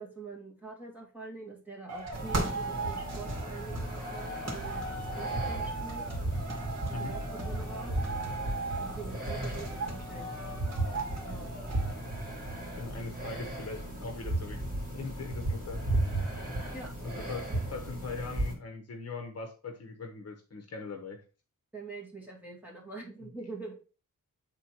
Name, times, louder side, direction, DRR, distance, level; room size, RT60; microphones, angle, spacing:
voice 1, 0.0-4.8 5.2-6.0 7.0-8.0 8.8-10.3 11.2-11.5 16.7-16.9 17.2-17.6 21.7-23.7, right 4 dB, 5° right, -3 dB, 2.2 m, -44 dB
sound 1, 1.9-11.9, right 3 dB, 50° right, 2.1 m, -37 dB
sound 2, 2.1-18.5, right 1 dB, 25° right, 2.8 m, -35 dB
voice 2, 12.8-14.6 14.9-15.8 17.0-21.2 23.2-23.3, left 4 dB, 50° left, 4 dB, 1.1 m, -40 dB
8.0 x 3.8 x 4.5 m, 0.36 s
wide cardioid pair, 160°, 32 cm